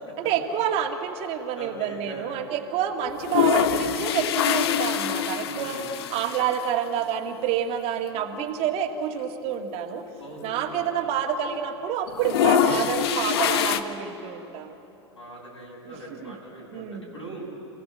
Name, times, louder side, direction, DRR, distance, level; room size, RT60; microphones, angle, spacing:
voice 1, 0.2-5.8 6.1-10.0 10.4-14.7 15.9-16.4 16.7-17.1, right 9 dB, 45° right, 4 dB, 2.0 m, -28 dB
voice 2, 1.5-2.3 5.4-5.9 10.2-11.1 15.1-17.4, right 2 dB, 90° left, -4 dB, 7.2 m, -41 dB
sound 1, 3.1-6.7 7.0-7.1 7.3-7.4 8.3-8.5 9.0-9.1 9.2-11.1 11.4-11.8 12.1-13.8, left 9 dB, 60° left, 1.1 m, -25 dB
28.0 x 16.0 x 7.5 m, 2.9 s
figure-of-eight pair, 90°, 15 cm